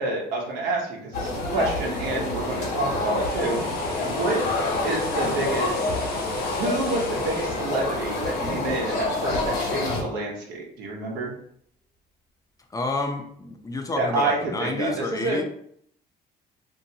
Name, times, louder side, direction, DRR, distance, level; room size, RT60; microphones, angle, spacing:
voice 1, 0.0-3.6 3.9-4.4 4.8-5.9 6.6-11.3 14.0-15.4, right 2 dB, 90° right, -1 dB, 0.9 m, -28 dB
sound 1, 1.1-10.0, left 2 dB, 80° left, 1.0 m, -27 dB
sound 2, 2.7-8.9 9.2-9.4, left 3 dB, 60° left, 0.7 m, -39 dB
voice 2, 12.7-15.4, left 2 dB, 20° left, 4 dB, 0.4 m, -29 dB
2.9 x 2.7 x 2.7 m, 0.67 s
cardioid pair, 110°, 17 cm